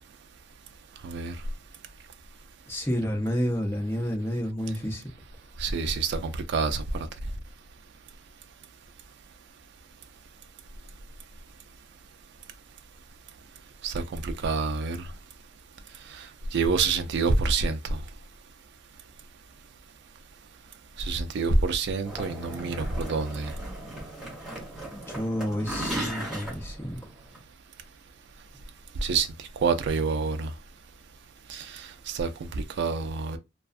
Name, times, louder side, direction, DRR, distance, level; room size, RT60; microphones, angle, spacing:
voice 1, 1.0-1.3 5.6-6.8 13.8-15.0 16.5-18.0 21.0-23.5 29.0-29.3 29.6-30.5 31.5-31.9 32.1-32.3 32.8-33.4, right 4 dB, 60° right, 0.3 m, -27 dB
voice 2, 2.7-5.1 24.9-27.0, equal, 10° left, 0.6 m, -30 dB
sound 1, 22.0-27.4, right 1 dB, 5° right, 1.1 m, -37 dB
2.3 x 2.3 x 2.4 m
head